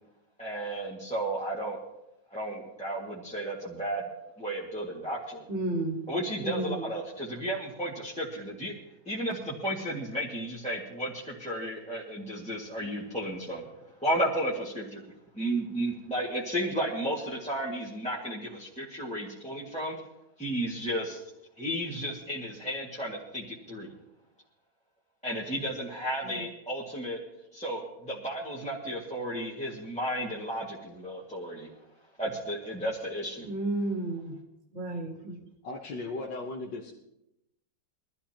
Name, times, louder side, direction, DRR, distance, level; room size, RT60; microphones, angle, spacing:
voice 1, 0.4-1.8 2.3-4.1 4.4-5.5 6.1-8.7 9.1-13.7 14.0-15.0 15.3-20.0 20.4-21.2 21.6-23.9 25.2-27.2 27.5-31.7 32.2-33.5, right 1 dB, 5° left, -6 dB, 1.7 m, -33 dB
voice 2, 5.5-6.1 6.4-6.9 26.2-26.4 33.4-34.4 34.7-35.4, right 1 dB, 35° right, 1 dB, 2.3 m, -32 dB
voice 3, 35.6-36.9, left 3 dB, 65° left, -2 dB, 1.8 m, -37 dB
22.5 x 13.0 x 2.9 m, 0.87 s
omnidirectional pair, 2.2 m